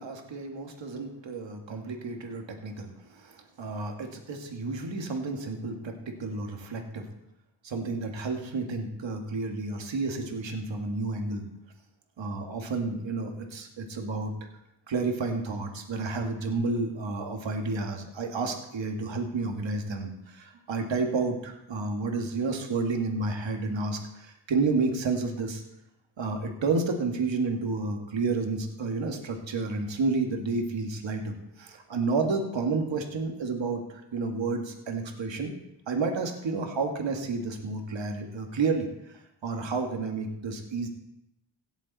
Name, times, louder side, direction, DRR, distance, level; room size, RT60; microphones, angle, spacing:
voice 1, 0.0-7.1 7.6-11.5 12.2-14.3 14.9-25.6 26.2-35.5 35.9-40.9, right 3 dB, 75° right, 3 dB, 2.0 m, -31 dB
16.5 x 7.2 x 4.2 m, 0.82 s
cardioid pair, 60°, 45 cm